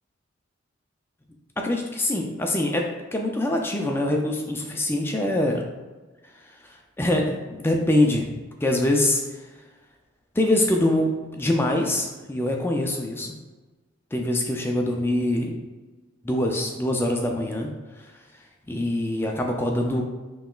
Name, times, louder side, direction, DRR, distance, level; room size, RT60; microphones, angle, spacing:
voice 1, 1.6-2.9 3.1-5.6 6.7-8.3 8.6-9.2 10.4-13.3 14.1-15.5 16.2-17.7 18.7-20.0, left 1 dB, 10° left, 1 dB, 0.3 m, -24 dB
5.4 x 2.9 x 2.3 m, 1.3 s
head